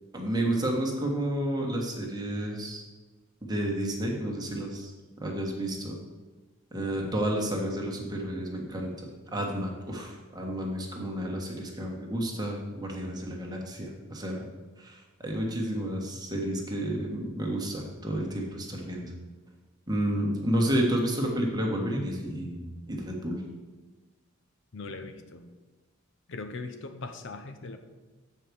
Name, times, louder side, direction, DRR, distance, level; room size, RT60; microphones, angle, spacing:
voice 1, 0.1-2.8 3.4-4.9 5.2-6.0 6.7-14.5 14.8-19.1 19.9-23.4, right 1 dB, 20° right, 0 dB, 1.4 m, -31 dB
voice 2, 24.7-25.5 26.3-27.8, left 3 dB, 60° left, 8 dB, 0.7 m, -40 dB
7.5 x 4.7 x 6.9 m, 1.2 s
head